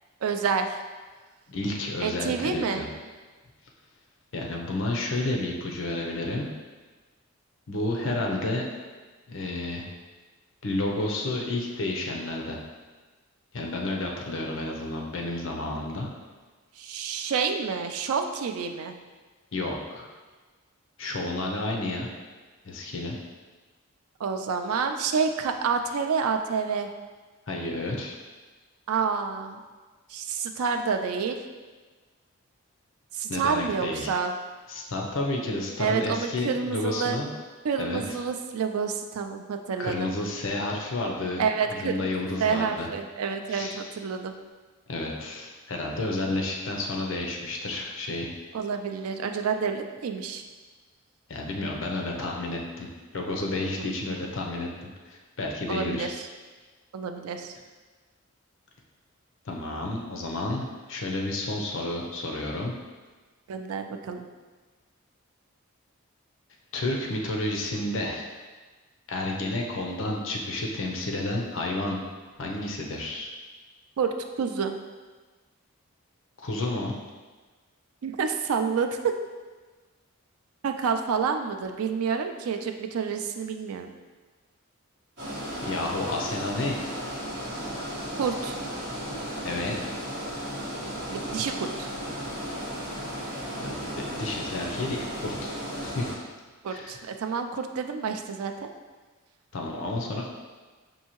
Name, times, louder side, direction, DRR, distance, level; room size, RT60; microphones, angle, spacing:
voice 1, 0.2-0.7 2.0-2.8 8.0-8.2 16.8-19.0 24.2-26.9 28.9-29.6 30.1-31.4 33.1-34.3 35.8-37.2 37.6-40.1 41.4-42.1 42.4-44.3 48.5-50.4 53.8-54.0 55.7-56.3 56.9-57.6 63.5-64.3 74.0-74.7 78.0-79.2 80.6-83.9 88.2-88.6 91.1-91.9 96.6-98.7, right 6 dB, 80° right, 6 dB, 0.4 m, -28 dB
voice 2, 1.5-2.9 4.3-6.5 7.7-8.6 9.3-9.8 10.6-12.6 13.5-16.1 19.5-20.1 21.0-22.1 22.6-23.2 27.5-28.2 33.3-34.2 34.7-37.3 37.8-38.2 39.8-42.9 43.5-43.9 44.9-48.3 51.3-56.1 59.5-62.8 66.7-68.3 69.1-72.0 72.4-73.3 76.4-76.9 85.6-86.8 89.4-89.7 93.6-95.6 95.8-96.1 96.7-97.0 99.5-100.4, left 2 dB, 60° left, 0 dB, 0.6 m, -31 dB
sound 1, 85.2-96.1, equal, 50° right, 1.5 m, -35 dB
5.4 x 2.7 x 2.9 m, 1.3 s
head